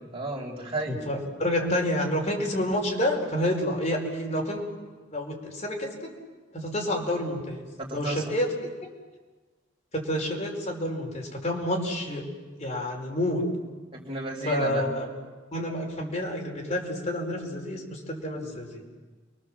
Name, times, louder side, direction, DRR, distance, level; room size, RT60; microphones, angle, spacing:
voice 1, 0.1-1.1 7.8-8.2 13.9-14.8, right 2 dB, 30° right, -1 dB, 4.8 m, -32 dB
voice 2, 0.9-4.6 5.1-6.0 6.5-7.6 7.9-8.5 9.9-12.2 12.6-13.4 14.4-15.1 15.5-18.8, left 1 dB, 35° left, 0 dB, 5.0 m, -29 dB
30.0 x 23.0 x 7.6 m, 1.3 s
head